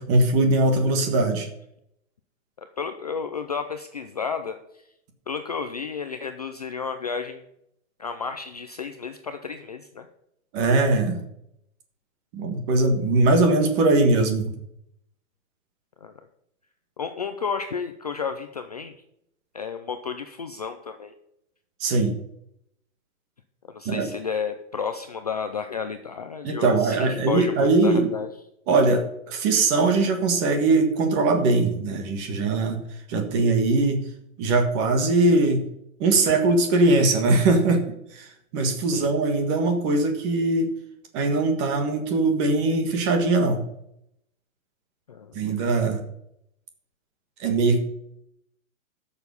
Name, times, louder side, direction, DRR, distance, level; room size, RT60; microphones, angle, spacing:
voice 1, 0.0-1.5 10.5-11.2 12.3-14.5 21.8-22.2 23.8-24.1 26.4-28.1 28.7-32.8 33.1-34.0 34.4-35.6 36.0-37.8 38.1-40.7 41.1-43.6 45.3-46.0 47.4-47.8, right 3 dB, 20° right, 5 dB, 1.5 m, -21 dB
voice 2, 2.6-4.8 5.3-7.5 8.0-10.1 16.0-16.1 17.0-18.9 19.5-21.1 23.7-28.3 38.9-39.1 45.1-45.5, left 6 dB, 30° left, 7 dB, 0.4 m, -32 dB
12.5 x 7.0 x 5.4 m, 0.76 s
hypercardioid pair, 180°, 40 cm